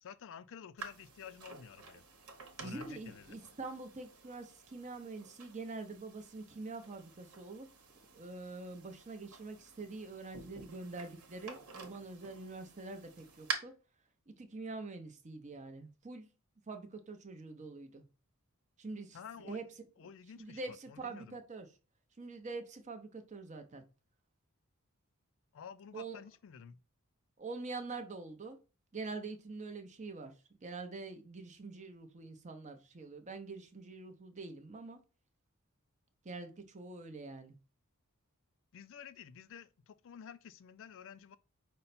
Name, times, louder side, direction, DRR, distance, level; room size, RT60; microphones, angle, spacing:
voice 1, 0.0-2.0 2.6-3.4 19.1-19.6 20.0-21.4 25.5-26.8 38.7-41.4, left 7 dB, 60° left, 0.4 m, -51 dB
sound 1, 0.8-13.5, right 5 dB, 85° right, 1.1 m, -49 dB
voice 2, 2.6-7.7 8.1-13.7 14.3-16.3 16.7-18.0 18.8-19.2 19.4-19.6 20.3-21.7 22.2-23.8 25.9-26.2 27.4-28.6 28.9-30.3 30.6-35.0 36.2-37.6, right 3 dB, 35° right, 0.7 m, -45 dB
5.4 x 2.2 x 4.1 m
head